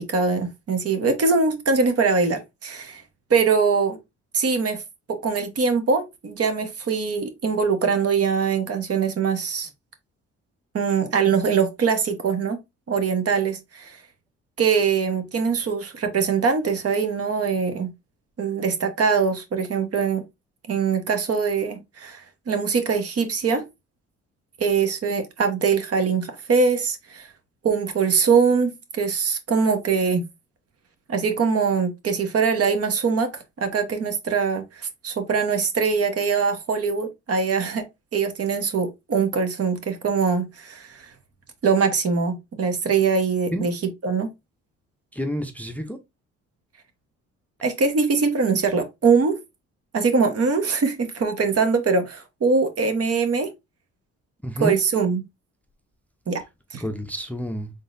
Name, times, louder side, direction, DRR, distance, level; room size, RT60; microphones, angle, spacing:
voice 1, 0.0-3.0 3.3-4.0 4.3-4.8 5.1-9.7 10.7-12.6 12.9-14.0 14.6-17.9 18.4-20.2 20.7-23.6 24.6-27.3 27.6-30.2 31.1-37.8 38.1-41.1 41.6-44.3 47.6-49.4 49.9-53.5 54.6-55.2 56.3-56.4 56.7-56.8, right 5 dB, 50° right, 1.1 m, -22 dB
voice 2, 45.1-46.0 54.4-54.8 56.8-57.7, equal, 5° left, 0.6 m, -29 dB
3.8 x 3.8 x 2.6 m
cardioid pair, 90°, 30 cm